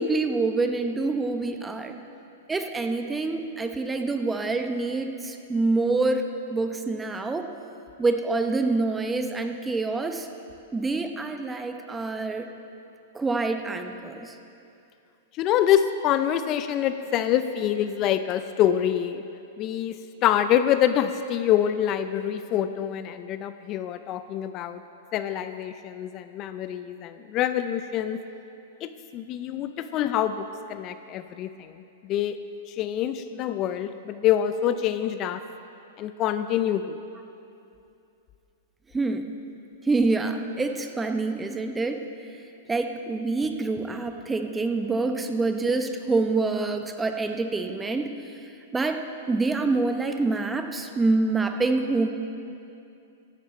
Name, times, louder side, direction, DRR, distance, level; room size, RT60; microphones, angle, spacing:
voice 1, 0.0-2.0 2.5-7.5 8.0-10.3 10.7-12.5 13.1-14.4 38.9-39.3 39.8-42.0 42.7-48.1 48.7-49.0 49.3-52.1, right 3 dB, 10° right, 6 dB, 0.8 m, -26 dB
voice 2, 15.3-19.2 19.6-20.0 20.2-24.8 25.1-28.2 28.8-32.4 32.7-35.4 36.0-37.0, left 10 dB, 35° left, 11 dB, 0.5 m, -26 dB
14.5 x 11.0 x 4.4 m, 2.7 s
hypercardioid pair, 125°, 0 cm